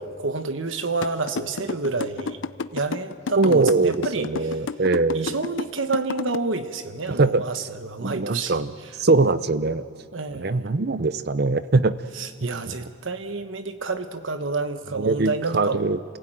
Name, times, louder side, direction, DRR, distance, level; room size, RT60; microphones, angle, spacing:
voice 1, 0.0-2.4 2.7-4.6 5.1-8.6 10.1-10.7 12.1-15.8, right 3 dB, 85° right, 9 dB, 1.2 m, -29 dB
sound 1, 1.0-6.4, left 5 dB, 80° left, 0.6 m, -30 dB
voice 2, 3.4-5.3 7.1-7.4 8.0-8.7 9.0-9.8 10.3-12.0 15.0-16.0, right 3 dB, 55° right, 14 dB, 0.7 m, -22 dB
27.0 x 16.5 x 9.0 m, 2.2 s
head